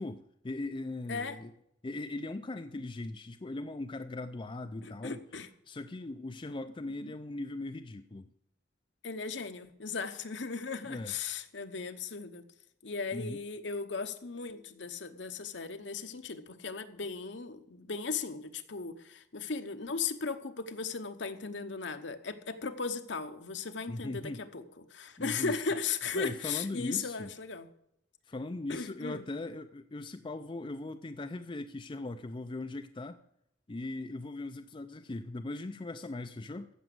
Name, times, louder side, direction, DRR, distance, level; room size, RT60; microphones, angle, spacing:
voice 1, 0.0-1.5 1.8-5.3 5.7-8.3 10.8-11.1 13.1-13.4 23.9-24.4 25.2-25.6 26.1-27.3 28.3-33.2 33.7-36.7, left 2 dB, 25° left, 8 dB, 0.4 m, -39 dB
voice 2, 4.8-5.5 7.0-7.1 9.0-12.5 12.8-27.7 28.7-29.3, left 5 dB, 65° left, 8 dB, 1.0 m, -37 dB
15.0 x 6.1 x 7.7 m, 0.75 s
head